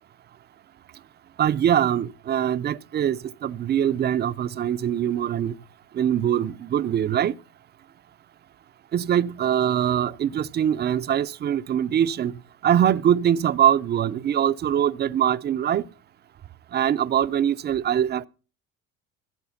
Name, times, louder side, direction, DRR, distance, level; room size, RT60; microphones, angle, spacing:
voice 1, 1.4-5.5 5.9-7.4 8.9-12.3 12.6-15.9 16.7-18.3, right 10 dB, 35° right, 0.6 m, -23 dB
15.5 x 7.7 x 5.7 m
cardioid pair, 130°, 30 cm